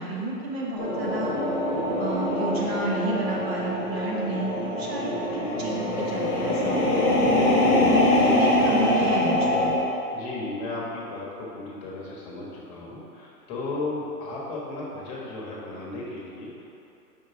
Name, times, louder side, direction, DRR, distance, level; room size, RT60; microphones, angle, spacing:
voice 1, 0.0-1.3 2.0-7.0 7.9-9.8, right 2 dB, 40° right, -4 dB, 1.2 m, -31 dB
sound 1, 0.8-9.8, left 1 dB, 10° left, 0.6 m, -23 dB
voice 2, 2.6-3.0 7.6-7.9 10.1-16.7, left 2 dB, 25° left, -5 dB, 1.3 m, -35 dB
5.4 x 4.7 x 5.8 m, 2.8 s
hypercardioid pair, 140°, 49 cm